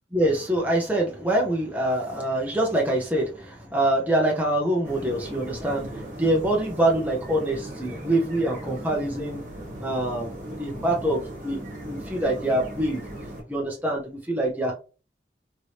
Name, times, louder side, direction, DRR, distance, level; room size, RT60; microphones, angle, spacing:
voice 1, 0.1-9.4 9.8-13.0 13.5-14.8, right 1 dB, 10° right, -1 dB, 0.7 m, -25 dB
sound 1, 4.8-13.4, right 1 dB, 45° right, 1.2 m, -38 dB
3.3 x 3.1 x 2.7 m, 0.34 s
head